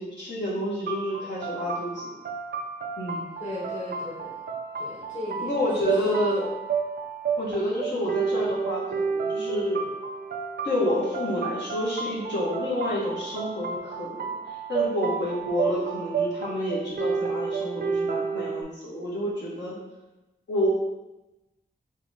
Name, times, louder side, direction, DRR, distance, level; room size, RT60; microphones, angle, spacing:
voice 1, 0.0-2.1 3.0-3.2 5.4-6.5 7.4-9.8 10.6-19.8 20.5-20.7, left 1 dB, 90° left, -8 dB, 1.3 m, -29 dB
sound 1, 0.9-18.6, right 5 dB, 65° right, 0.4 m, -31 dB
voice 2, 3.4-6.2, left 2 dB, 45° left, -5 dB, 0.9 m, -38 dB
2.9 x 2.8 x 3.6 m, 1.0 s
wide cardioid pair, 95°, 18 cm